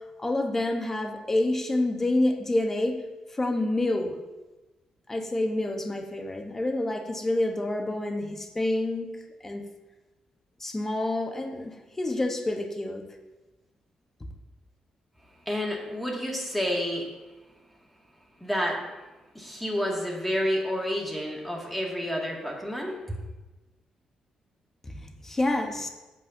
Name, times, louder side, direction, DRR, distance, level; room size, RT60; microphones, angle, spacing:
voice 1, 0.2-3.0 3.3-4.1 5.1-9.1 9.4-9.6 10.6-13.0 24.9-25.9, left 1 dB, 20° left, 4 dB, 1.0 m, -28 dB
voice 2, 15.5-17.1 18.4-18.8 19.3-23.0, equal, 5° left, -2 dB, 2.0 m, -29 dB
13.0 x 8.6 x 2.7 m, 1.1 s
cardioid pair, 125°, 2 cm